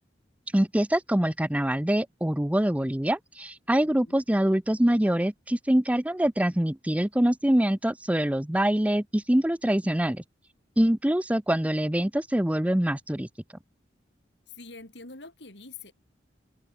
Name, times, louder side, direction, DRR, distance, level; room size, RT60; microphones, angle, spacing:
voice 1, 0.5-10.2 10.8-13.3, right 1 dB, 10° right, 0.6 m, -24 dB
voice 2, 14.5-15.9, left 3 dB, 70° left, 5.0 m, -45 dB
head